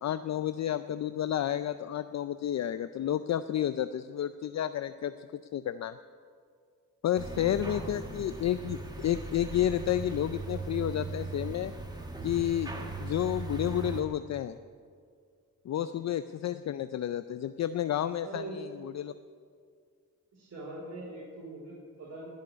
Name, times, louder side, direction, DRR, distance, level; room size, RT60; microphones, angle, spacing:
voice 1, 0.0-5.1 5.5-6.0 7.0-11.7 12.2-12.7 13.0-14.6 15.7-19.1, left 11 dB, 55° left, 12 dB, 0.5 m, -31 dB
sound 1, 7.2-14.0, right 3 dB, 10° right, 1.7 m, -39 dB
voice 2, 7.7-8.1 15.7-16.0 18.2-18.6 20.3-22.3, right 2 dB, 50° right, -6 dB, 4.4 m, -43 dB
19.0 x 6.5 x 9.8 m, 2.1 s
cardioid pair, 110°, 34 cm